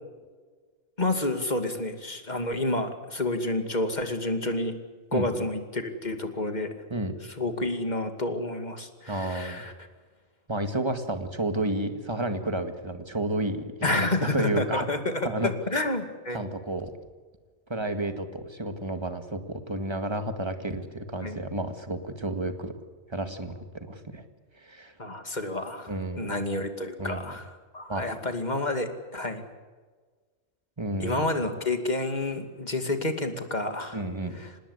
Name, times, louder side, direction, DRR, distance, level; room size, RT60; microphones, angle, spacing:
voice 1, 1.0-4.7 5.1-6.7 7.4-9.7 13.8-16.4 21.2-21.4 25.0-25.9 26.2-29.4 31.0-34.0 34.3-34.5, left 2 dB, 35° left, 6 dB, 2.6 m, -29 dB
voice 2, 5.1-5.5 6.9-7.1 9.1-9.6 10.5-13.6 13.9-14.9 15.2-15.5 16.3-16.9 17.7-22.7 23.1-24.2 24.6-24.9 25.9-26.3 27.0-27.3 27.9-28.1 30.8-31.2 33.9-34.4, right 2 dB, 20° right, 7 dB, 2.1 m, -31 dB
26.0 x 19.5 x 8.2 m, 1.4 s
omnidirectional pair, 1.3 m